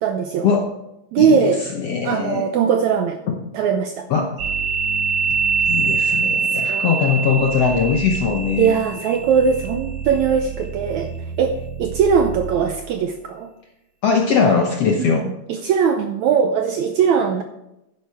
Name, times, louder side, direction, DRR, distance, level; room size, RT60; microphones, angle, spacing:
voice 1, 0.0-0.5 1.1-1.6 2.0-3.2 3.5-4.1 6.5-7.0 8.6-11.1 11.4-13.5 15.0-17.4, right 7 dB, 80° right, 6 dB, 1.7 m, -20 dB
voice 2, 1.2-2.4 3.3-3.4 4.1-4.3 5.7-8.8 14.0-15.3, left 6 dB, 70° left, 2 dB, 1.5 m, -20 dB
sound 1, 4.4-13.0, right 5 dB, 55° right, 1.9 m, -25 dB
11.5 x 10.5 x 3.5 m, 0.88 s
omnidirectional pair, 4.1 m